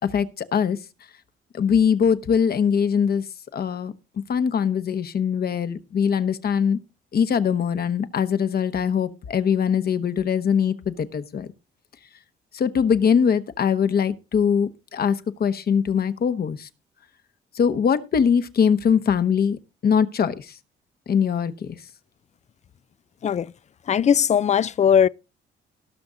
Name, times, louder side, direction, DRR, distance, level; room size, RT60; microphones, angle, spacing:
voice 1, 0.1-0.8 1.5-3.2 3.5-3.9 4.3-6.8 7.1-11.5 12.5-16.7 17.5-20.5 21.1-21.8, left 7 dB, 50° left, 1.1 m, -22 dB
voice 2, 23.9-25.1, left 8 dB, 35° left, 0.4 m, -19 dB
18.5 x 6.1 x 3.8 m
cardioid pair, 90°, 20 cm